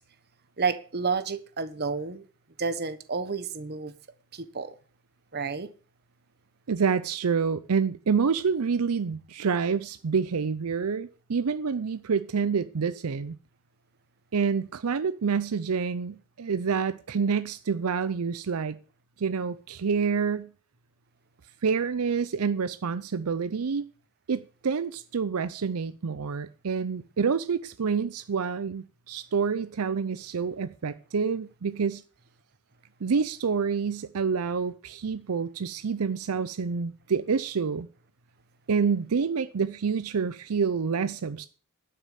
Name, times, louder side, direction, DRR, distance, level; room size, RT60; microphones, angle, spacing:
voice 1, 0.6-2.3 2.6-4.0 4.3-4.8 5.3-5.7, right 5 dB, 45° right, 1.2 m, -30 dB
voice 2, 6.7-13.4 14.3-18.8 19.2-20.5 21.6-23.9 24.3-32.0 33.0-37.9 38.7-41.5, right 5 dB, 80° right, 0.5 m, -27 dB
11.5 x 6.7 x 7.4 m
head